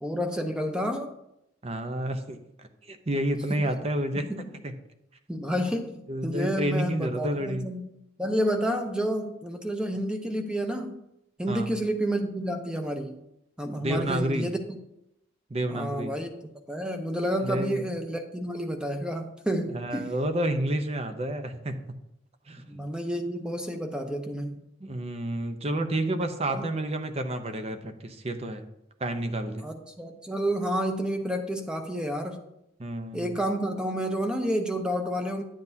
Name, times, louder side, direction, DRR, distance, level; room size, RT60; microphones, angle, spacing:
voice 1, 0.0-1.1 3.5-3.6 4.2-4.5 5.3-7.9 8.2-11.0 11.4-13.2 13.6-14.8 15.7-16.3 16.7-20.1 22.6-24.6 26.5-26.7 29.6-32.4 33.1-35.4, equal, 5° right, 5 dB, 0.8 m, -30 dB
voice 2, 1.6-2.4 2.8-4.2 4.6-4.7 6.1-7.7 11.5-11.7 13.8-14.5 15.5-16.1 17.4-17.8 19.7-21.7 22.5-22.8 24.8-28.6 29.0-29.7 32.8-33.3, right 1 dB, 35° right, 7 dB, 0.7 m, -30 dB
10.5 x 7.7 x 2.8 m, 0.82 s
head